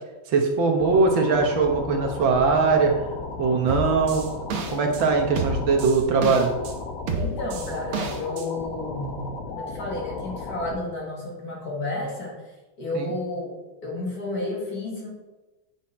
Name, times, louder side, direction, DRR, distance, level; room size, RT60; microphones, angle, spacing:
voice 1, 0.3-2.9 3.4-4.3 4.7-6.5 12.9-13.1, right 4 dB, 70° right, 3 dB, 1.9 m, -21 dB
sound 1, 0.8-10.8, left 3 dB, 75° left, 2.1 m, -35 dB
sound 2, 3.7-5.0 5.4-6.7 7.1-8.5, right 3 dB, 90° right, 1.9 m, -30 dB
voice 2, 7.2-9.2 9.5-12.3 12.8-13.5 13.8-15.1, left 2 dB, 45° left, -2 dB, 2.4 m, -31 dB
8.8 x 6.2 x 4.3 m, 1.1 s
omnidirectional pair, 2.2 m